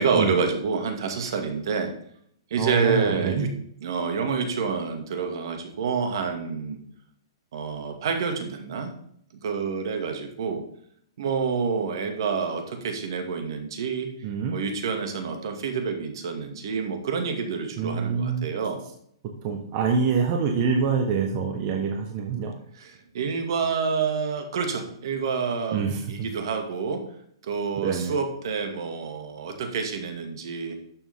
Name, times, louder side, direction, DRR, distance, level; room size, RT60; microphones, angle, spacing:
voice 1, 0.0-1.9 2.5-3.5 3.8-6.8 7.5-8.9 9.4-10.6 11.2-14.1 14.5-18.8 22.7-25.8 26.1-27.0 27.4-30.8, right 5 dB, 60° right, 5 dB, 2.1 m, -28 dB
voice 2, 2.6-3.5 14.2-14.5 17.8-18.5 19.4-22.5 25.7-26.3 27.8-28.1, right 6 dB, 30° right, 2 dB, 1.2 m, -25 dB
12.5 x 7.0 x 3.7 m, 0.67 s
hypercardioid pair, 160°, 3 cm